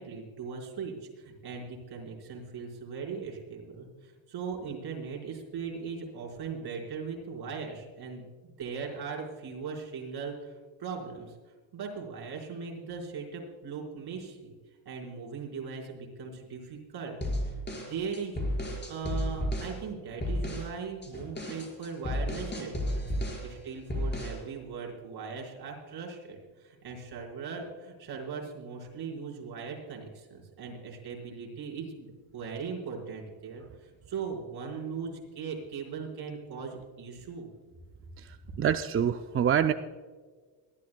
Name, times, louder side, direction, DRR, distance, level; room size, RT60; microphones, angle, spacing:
voice 1, 0.0-11.3 11.7-14.5 14.8-23.1 23.4-37.5, right 5 dB, 50° right, -1 dB, 4.9 m, -39 dB
sound 1, 17.2-19.8 20.2-20.7 21.0-23.5 23.9-24.4, equal, 20° left, 5.0 m, -32 dB
voice 2, 38.2-39.7, right 9 dB, 30° right, 8 dB, 0.4 m, -26 dB
23.5 x 13.5 x 2.2 m, 1.5 s
cardioid pair, 110°, 48 cm